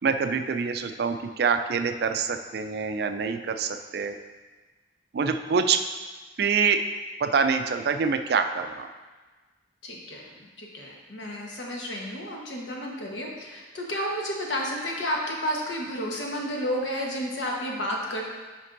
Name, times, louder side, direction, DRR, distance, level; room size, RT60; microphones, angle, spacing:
voice 1, 0.0-4.2 5.1-5.8 6.4-6.8 7.2-8.9, right 5 dB, 55° right, 8 dB, 0.4 m, -25 dB
voice 2, 9.8-18.2, equal, 75° left, -1 dB, 1.2 m, -31 dB
9.5 x 5.3 x 2.6 m, 1.3 s
head